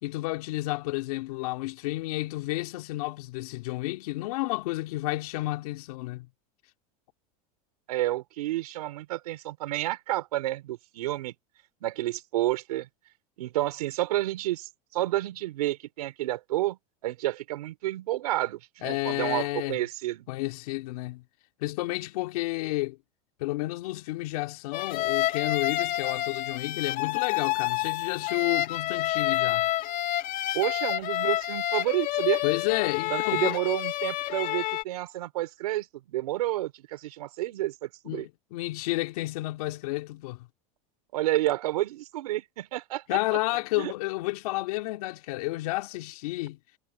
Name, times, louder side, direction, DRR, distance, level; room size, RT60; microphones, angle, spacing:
voice 1, 0.0-6.3 18.8-19.8 20.3-21.2 21.6-23.0 23.4-29.7 32.4-33.6 38.0-40.5 43.1-46.6, left 20 dB, 75° left, 2.7 m, -31 dB
voice 2, 7.9-11.3 11.8-12.9 13.4-20.3 30.5-32.4 33.1-38.3 41.1-43.2 43.8-43.9, right 16 dB, 90° right, 4.3 m, -30 dB
sound 1, 24.7-34.8, left 14 dB, 45° left, 2.1 m, -28 dB
supercardioid pair, 125°, 19 cm